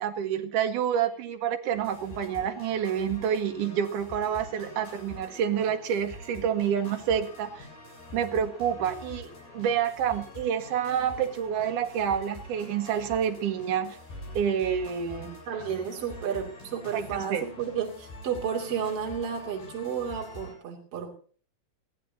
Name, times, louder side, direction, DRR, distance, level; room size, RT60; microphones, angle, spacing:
voice 1, 0.0-7.7 8.1-14.0 14.3-15.4 16.9-17.4, right 8 dB, 70° right, 5 dB, 3.0 m, -28 dB
sound 1, 1.7-20.5, left 2 dB, 90° left, 10.0 m, -45 dB
voice 2, 15.5-21.1, right 7 dB, 45° right, 0 dB, 3.6 m, -32 dB
22.0 x 15.5 x 2.8 m, 0.42 s
omnidirectional pair, 4.0 m